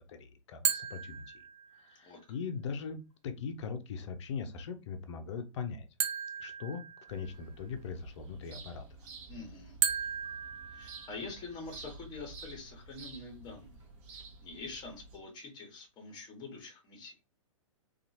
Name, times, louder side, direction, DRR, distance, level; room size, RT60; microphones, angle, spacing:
voice 1, 0.0-1.4 1.8-5.9 6.4-8.9, left 5 dB, 60° left, 8 dB, 0.6 m, -40 dB
sound 1, 0.6-1.9 6.0-7.5 9.8-11.5, right 8 dB, 60° right, 0.6 m, -35 dB
sound 2, 7.1-15.2, right 3 dB, 35° right, 0.9 m, -51 dB
voice 2, 9.3-9.8 10.7-13.8 14.1-17.1, left 3 dB, 25° left, 3 dB, 1.1 m, -45 dB
2.8 x 2.4 x 2.6 m, 0.29 s
hypercardioid pair, 120°, 17 cm